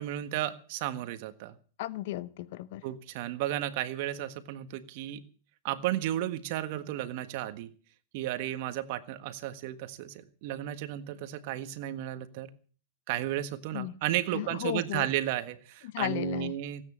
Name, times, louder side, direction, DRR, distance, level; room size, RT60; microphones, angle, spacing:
voice 1, 0.0-1.5 2.8-5.2 5.6-7.7 8.1-12.5 13.1-16.8, right 13 dB, 55° right, 12 dB, 1.6 m, -33 dB
voice 2, 1.8-2.9 13.7-13.9 14.3-15.1 15.8-16.6, left 15 dB, 65° left, 18 dB, 0.9 m, -34 dB
17.0 x 9.1 x 8.7 m, 0.42 s
hypercardioid pair, 130°, 0 cm